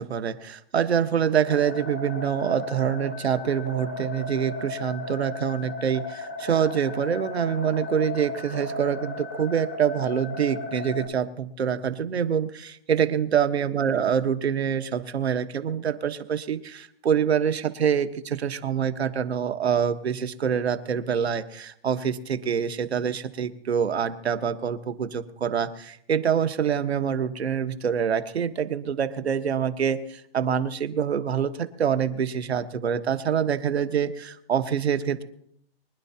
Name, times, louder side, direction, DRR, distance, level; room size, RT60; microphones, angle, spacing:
voice 1, 0.0-35.2, right 8 dB, 90° right, 9 dB, 1.4 m, -26 dB
sound 1, 1.5-11.1, left 2 dB, 10° left, 0.4 m, -36 dB
24.0 x 10.5 x 2.9 m, 0.69 s
hypercardioid pair, 175°, 31 cm